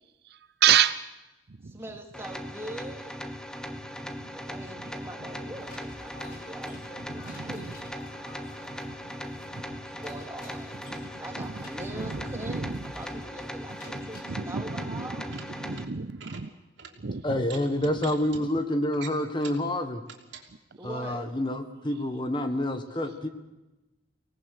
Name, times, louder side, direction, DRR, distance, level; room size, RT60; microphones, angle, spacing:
voice 1, 0.3-1.0 1.6-1.8 4.0-4.1 7.2-7.6 9.1-9.2 11.9-12.8 13.9-14.0 14.3-16.5 17.0-17.2, right 9 dB, 55° right, 13 dB, 0.6 m, -28 dB
voice 2, 1.6-3.1 4.3-6.8 7.0-8.0 9.8-10.9 11.2-15.3 20.8-21.3, right 1 dB, 15° right, 2 dB, 2.7 m, -42 dB
sound 1, 2.1-15.8, equal, 5° left, 1.3 m, -39 dB
sound 2, 5.5-14.2, left 1 dB, 50° left, 4.5 m, -49 dB
sound 3, 15.2-15.8 16.1-16.4 16.8-16.9 17.4-18.4 18.9-19.7 20.0-20.5, right 7 dB, 80° right, 3.2 m, -45 dB
voice 3, 17.2-20.0 20.8-23.3, left 1 dB, 25° left, 7 dB, 1.4 m, -28 dB
25.0 x 18.5 x 6.6 m, 1.0 s
head